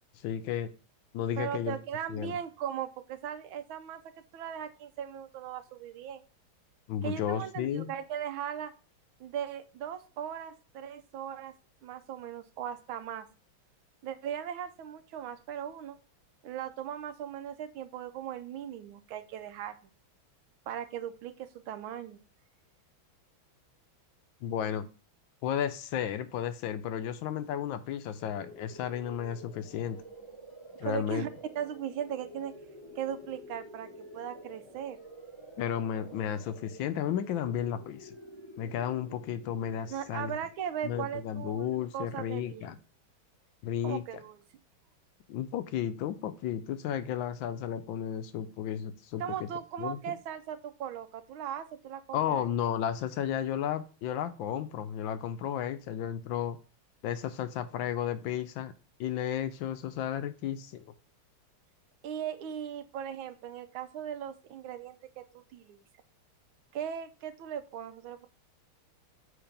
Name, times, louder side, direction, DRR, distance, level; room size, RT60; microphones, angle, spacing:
voice 1, 0.2-0.7 1.1-1.8 2.1-2.3 6.9-7.9 24.4-24.9 25.4-30.0 30.8-31.3 35.6-38.1 38.6-40.3 40.8-42.7 43.6-44.0 45.3-49.2 49.8-50.0 52.1-56.6 57.0-58.7 59.0-60.8, left 9 dB, 75° left, 11 dB, 1.3 m, -33 dB
voice 2, 1.4-6.2 7.0-8.7 9.2-11.5 11.8-13.3 14.0-16.0 16.4-19.9 20.7-22.2 30.8-31.3 31.5-32.5 33.0-33.9 34.1-35.0 39.9-42.8 43.8-44.4 49.2-52.5 62.0-65.8 66.7-68.3, right 9 dB, 80° right, 11 dB, 1.5 m, -38 dB
sound 1, 28.2-41.0, equal, 15° left, 2.1 m, -49 dB
7.9 x 3.3 x 5.1 m, 0.36 s
omnidirectional pair, 2.3 m